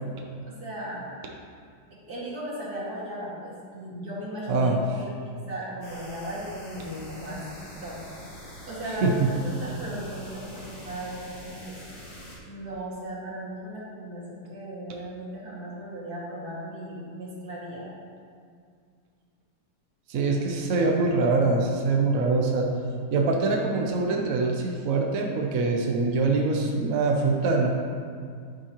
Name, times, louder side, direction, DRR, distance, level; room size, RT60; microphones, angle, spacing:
voice 1, 0.6-1.1 1.9-8.0 8.6-11.8 12.5-17.9, right 1 dB, 45° right, -6 dB, 2.6 m, -37 dB
sound 1, 5.8-12.4, equal, 50° left, 2.8 m, -44 dB
voice 2, 20.1-22.7 23.1-27.7, right 3 dB, 65° right, 0 dB, 0.8 m, -24 dB
11.0 x 8.8 x 3.0 m, 2.2 s
omnidirectional pair, 2.4 m